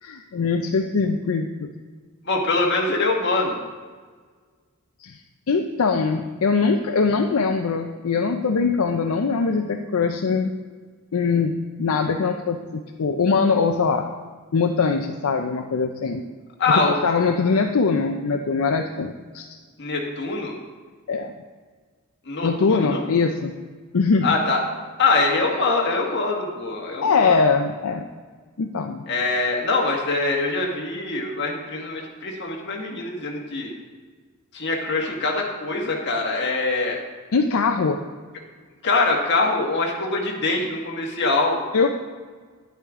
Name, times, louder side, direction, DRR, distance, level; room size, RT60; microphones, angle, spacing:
voice 1, 0.0-1.7 5.0-5.2 5.5-10.5 11.1-11.5 11.8-14.1 14.5-16.3 16.7-19.6 21.1-21.3 22.4-23.5 23.9-24.3 27.0-28.0 28.6-29.0 37.3-38.0 41.7-41.9, left 4 dB, 75° left, 5 dB, 0.5 m, -22 dB
voice 2, 2.2-3.6 16.6-17.0 19.8-20.5 22.2-23.0 24.2-24.6 25.0-27.4 29.1-33.7 34.5-37.0 38.8-41.6, left 3 dB, 55° left, 0 dB, 1.5 m, -23 dB
9.9 x 8.7 x 3.6 m, 1.5 s
head